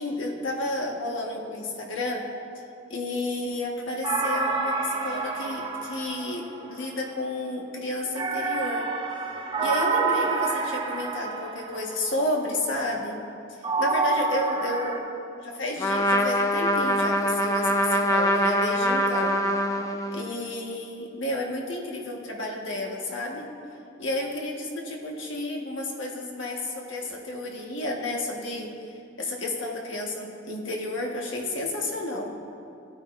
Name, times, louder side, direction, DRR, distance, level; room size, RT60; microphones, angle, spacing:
voice 1, 0.0-2.2 2.9-8.9 9.6-13.2 13.5-15.0 15.4-19.4 20.1-23.5 24.0-28.7 29.2-32.4, left 1 dB, 90° left, 0 dB, 1.4 m, -31 dB
sound 1, 4.0-6.9 8.1-12.0 13.6-15.0, right 4 dB, 25° right, 0.7 m, -28 dB
Trumpet, 15.8-20.4, equal, 15° left, 0.5 m, -24 dB
15.5 x 8.8 x 2.5 m, 2.6 s
head